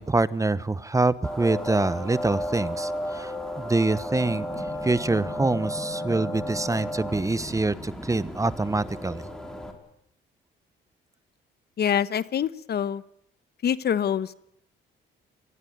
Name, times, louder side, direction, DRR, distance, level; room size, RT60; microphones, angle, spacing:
voice 1, 0.0-4.5 4.8-9.2, right 2 dB, 15° right, 17 dB, 1.0 m, -25 dB
sound 1, 1.2-9.7, left 1 dB, 5° left, 5.2 m, -33 dB
voice 2, 11.8-13.0 13.6-14.3, left 8 dB, 55° left, 16 dB, 1.0 m, -25 dB
24.5 x 19.5 x 9.5 m, 0.75 s
cardioid pair, 90°, 20 cm